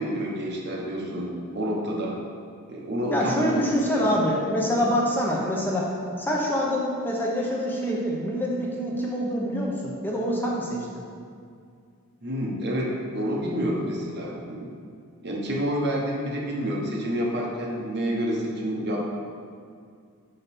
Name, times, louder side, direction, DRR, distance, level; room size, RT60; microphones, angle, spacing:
voice 1, 0.0-2.2 2.7-3.6 3.9-4.1 12.2-14.7 15.2-19.1, equal, 50° right, -2 dB, 1.0 m, -28 dB
voice 2, 3.1-5.9 6.2-10.9, equal, 10° left, -4 dB, 0.8 m, -25 dB
5.7 x 5.2 x 4.2 m, 2.2 s
head